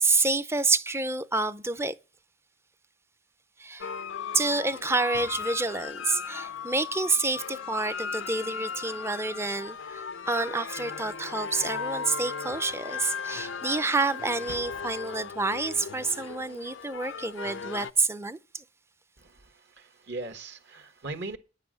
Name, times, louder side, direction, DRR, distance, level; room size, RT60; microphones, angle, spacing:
voice 1, 0.0-1.9 3.6-3.9 4.3-18.6, right 3 dB, 15° right, 0.6 m, -28 dB
sound 1, 3.8-17.9, left 6 dB, 70° left, 0.6 m, -37 dB
voice 2, 19.2-21.4, right 2 dB, 60° right, 1.5 m, -39 dB
10.5 x 8.2 x 6.3 m
head